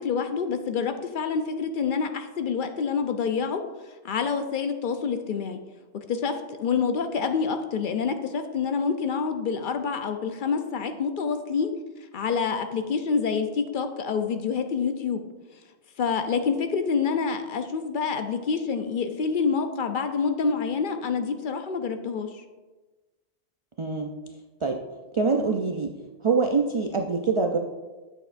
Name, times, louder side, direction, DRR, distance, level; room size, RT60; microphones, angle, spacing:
voice 1, 0.0-3.6 4.0-5.6 6.1-11.7 12.1-15.2 16.0-22.4, left 5 dB, 60° left, 7 dB, 0.6 m, -27 dB
voice 2, 23.8-24.1 24.6-24.8 25.1-25.9 26.2-27.6, right 4 dB, 55° right, 3 dB, 0.3 m, -24 dB
8.0 x 6.7 x 2.5 m, 1.2 s
omnidirectional pair, 1.1 m